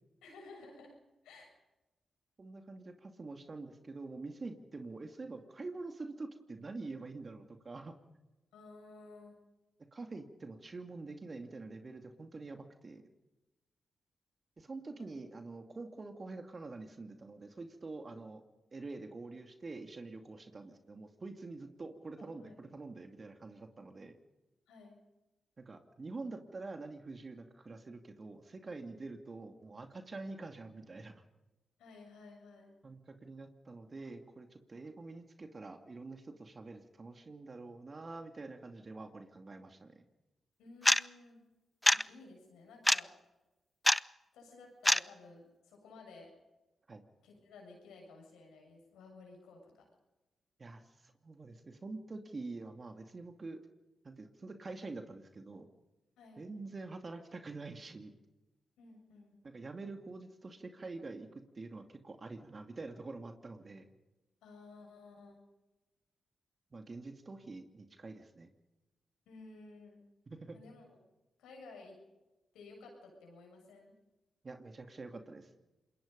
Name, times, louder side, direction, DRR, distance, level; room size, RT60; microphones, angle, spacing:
voice 1, 0.2-1.0 1.2-1.5 8.5-9.4 15.0-15.2 22.2-22.6 24.7-25.0 31.8-32.8 40.6-41.4 41.9-43.1 44.3-46.3 47.2-49.9 56.2-56.4 58.8-59.4 64.4-65.4 69.3-70.0 70.5-70.9 71.4-72.0 72.5-73.9, left 3 dB, 85° left, 1 dB, 7.3 m, -54 dB
voice 2, 2.4-8.0 9.9-13.0 14.6-18.4 18.7-24.1 25.6-31.2 32.8-40.0 46.9-47.0 50.6-50.8 51.2-53.6 54.0-55.7 56.4-58.1 59.4-61.3 61.6-63.8 66.7-68.5 70.3-70.6 74.4-75.5, right 3 dB, 45° right, 6 dB, 2.5 m, -46 dB
sound 1, 40.9-41.0 41.9-42.0 42.9-43.0 43.9-44.0 44.9-45.0, left 1 dB, 10° left, 0.6 m, -24 dB
26.5 x 21.5 x 5.4 m, 1.1 s
supercardioid pair, 40°, 0 cm